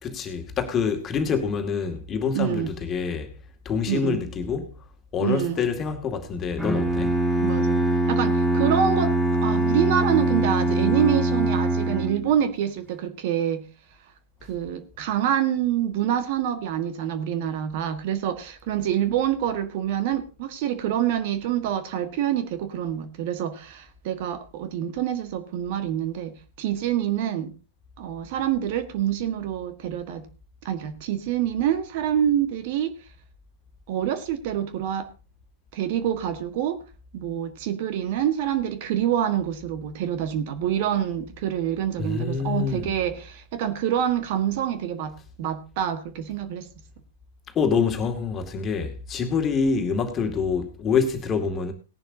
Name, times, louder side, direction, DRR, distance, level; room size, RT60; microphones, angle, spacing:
voice 1, 0.0-3.3 3.7-4.8 5.1-7.1 42.0-42.9 47.5-51.7, left 5 dB, 25° left, 2.3 m, -26 dB
voice 2, 2.3-2.7 3.9-4.2 5.2-5.6 7.4-7.8 8.1-13.7 14.4-27.5 28.0-30.3 30.6-32.9 33.9-35.1 35.7-36.8 37.1-46.7, right 10 dB, 50° right, 1.5 m, -26 dB
Bowed string instrument, 6.6-12.5, right 1 dB, 5° right, 3.6 m, -23 dB
18.5 x 11.0 x 2.8 m
figure-of-eight pair, 100°, 0 cm